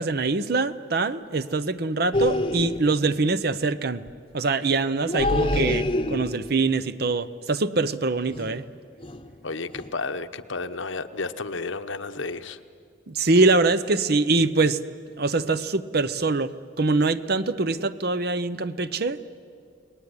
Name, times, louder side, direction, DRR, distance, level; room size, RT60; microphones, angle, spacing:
voice 1, 0.0-4.0 4.3-8.6 13.1-14.8 15.2-19.2, right 3 dB, 55° right, 13 dB, 0.8 m, -24 dB
sound 1, 2.1-3.0 5.0-6.6 8.3-8.7 9.0-9.3 9.7-9.9, left 1 dB, 25° left, 1.0 m, -26 dB
voice 2, 9.4-12.6, left 3 dB, 80° left, 9 dB, 1.1 m, -32 dB
30.0 x 19.5 x 9.8 m, 2.3 s
head